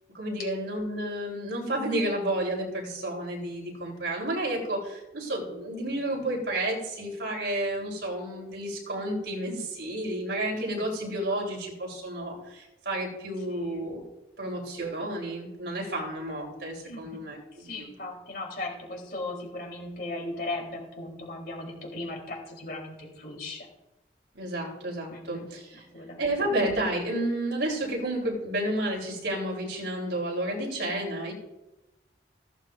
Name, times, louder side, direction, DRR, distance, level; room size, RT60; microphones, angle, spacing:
voice 1, 0.1-14.0 14.4-17.9 24.3-25.8 26.2-31.3, right 1 dB, 80° right, 0 dB, 3.8 m, -31 dB
voice 2, 13.5-13.8 16.8-17.2 17.6-23.7 25.1-25.5 25.9-26.3, left 2 dB, 55° left, -1 dB, 3.8 m, -37 dB
16.0 x 13.0 x 2.6 m, 0.95 s
head